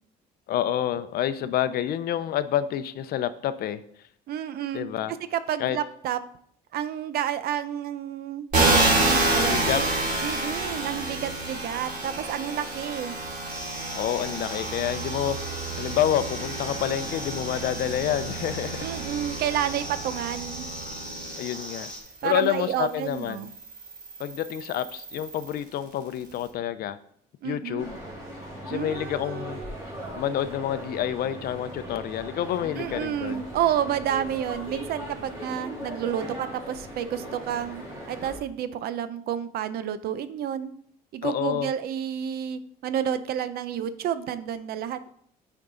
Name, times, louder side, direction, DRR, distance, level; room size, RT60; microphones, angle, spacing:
voice 1, 0.5-3.8 4.7-5.1 5.6-5.8 9.4-9.8 13.9-18.9 21.4-21.9 22.2-23.5 24.2-27.0 27.4-28.0 28.6-29.6 30.1-33.4 41.2-41.7, left 11 dB, 65° left, 13 dB, 0.6 m, -28 dB
voice 2, 4.3-4.8 5.3-6.2 6.7-8.5 8.9-9.9 10.2-13.1 18.8-20.6 22.2-23.5 27.4-27.9 28.7-29.7 32.8-37.8 38.1-40.7 41.1-45.1, right 10 dB, 65° right, 13 dB, 0.6 m, -30 dB
sound 1, 8.5-21.9 22.6-25.5, right 2 dB, 50° right, 2.8 m, -28 dB
sound 2, 13.5-22.0, left 1 dB, 5° left, 3.2 m, -39 dB
sound 3, 27.8-38.4, equal, 20° right, 3.0 m, -39 dB
9.3 x 4.5 x 3.8 m, 0.65 s
cardioid pair, 110°, 17 cm